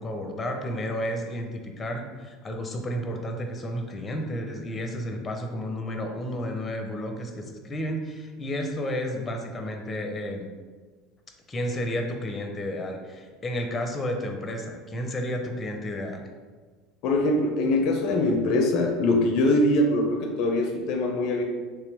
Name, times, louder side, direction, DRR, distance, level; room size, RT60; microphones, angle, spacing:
voice 1, 0.0-10.5 11.5-16.2, equal, 25° left, 3 dB, 0.6 m, -32 dB
voice 2, 17.0-21.4, left 1 dB, 65° left, 3 dB, 0.5 m, -23 dB
3.4 x 2.9 x 3.4 m, 1.4 s
supercardioid pair, 95°, 0 cm